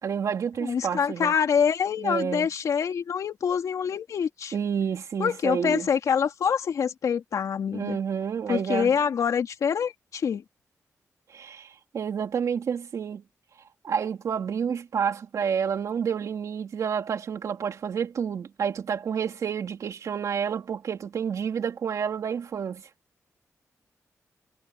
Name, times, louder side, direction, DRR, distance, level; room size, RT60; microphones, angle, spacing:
voice 1, 0.0-1.3 2.0-2.5 4.5-5.9 7.7-8.9 11.3-13.2 13.8-22.8, right 7 dB, 75° right, 3.2 m, -29 dB
voice 2, 0.6-4.5 5.2-8.0 8.5-10.4, left 7 dB, 80° left, 3.3 m, -25 dB
wide cardioid pair, 175°, 6 cm